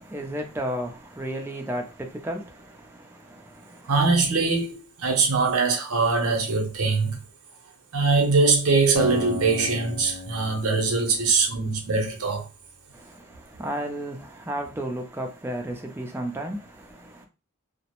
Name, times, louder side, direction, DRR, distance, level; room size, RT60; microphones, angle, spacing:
voice 1, 0.0-3.9 12.9-17.3, right 1 dB, 10° right, 0.4 m, -33 dB
voice 2, 3.8-7.2 7.9-12.5, right 4 dB, 65° right, 0.7 m, -22 dB
Acoustic guitar, 8.9-12.1, left 3 dB, 70° left, 0.5 m, -36 dB
2.4 x 2.0 x 2.9 m
head